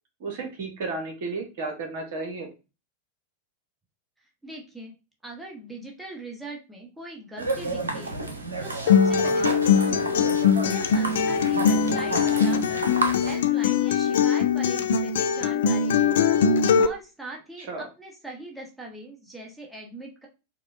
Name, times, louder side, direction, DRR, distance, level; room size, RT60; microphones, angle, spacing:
voice 1, 0.2-2.5 17.6-17.9, right 3 dB, 50° right, 3 dB, 1.0 m, -33 dB
voice 2, 4.2-4.9 5.2-8.2 8.6-10.4 10.7-16.1 16.8-20.3, right 2 dB, 5° right, -2 dB, 0.9 m, -41 dB
sound 1, 7.4-13.4, right 2 dB, 75° right, 0.6 m, -31 dB
Acoustic guitar, 8.9-16.9, left 7 dB, 60° left, 0.3 m, -21 dB
4.7 x 2.2 x 2.5 m, 0.29 s
figure-of-eight pair, 90°, 0 cm